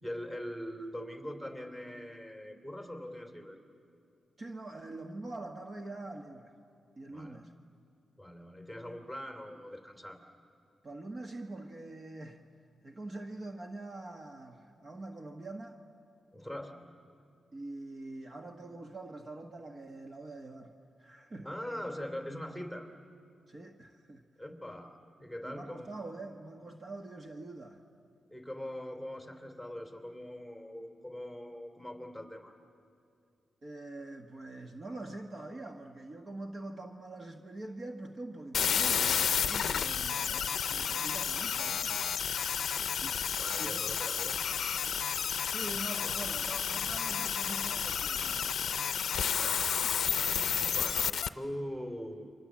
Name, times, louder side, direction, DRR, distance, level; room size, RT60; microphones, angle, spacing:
voice 1, 0.0-3.6 7.1-7.4 8.2-10.2 16.3-16.8 21.4-22.9 24.4-25.9 28.3-32.5 42.5-42.6 43.4-44.4 49.3-49.7 50.1-52.3, equal, 10° right, 4 dB, 3.0 m, -42 dB
voice 2, 4.4-6.5 7.0-7.5 10.8-12.4 12.8-15.8 17.5-20.7 21.0-21.5 23.5-24.2 25.4-27.8 33.6-42.1 43.0-43.1 43.6-44.0 45.3-48.9 49.3-49.9, right 2 dB, 40° right, 3 dB, 1.4 m, -44 dB
sound 1, 38.5-51.3, left 7 dB, 75° left, 0.5 m, -31 dB
29.5 x 24.5 x 7.5 m, 2.5 s
cardioid pair, 90°, 0 cm